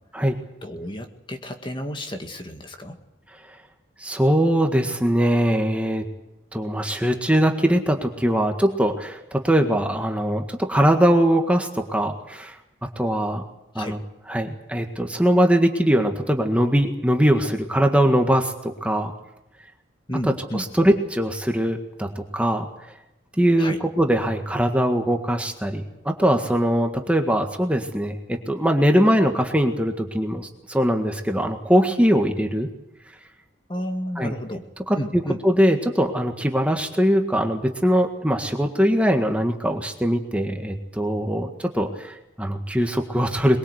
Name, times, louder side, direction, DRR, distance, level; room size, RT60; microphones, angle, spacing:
voice 1, 0.6-3.0 13.7-14.0 20.1-20.7 23.6-23.8 33.7-34.7 34.9-35.4, equal, 25° left, 5 dB, 1.9 m, -32 dB
voice 2, 4.0-6.1 6.5-13.4 13.8-14.0 14.3-19.1 20.5-22.7 23.4-32.7 34.2-34.3 34.9-35.0 35.4-43.6, equal, 5° right, 4 dB, 1.8 m, -21 dB
22.5 x 22.5 x 8.1 m, 0.89 s
head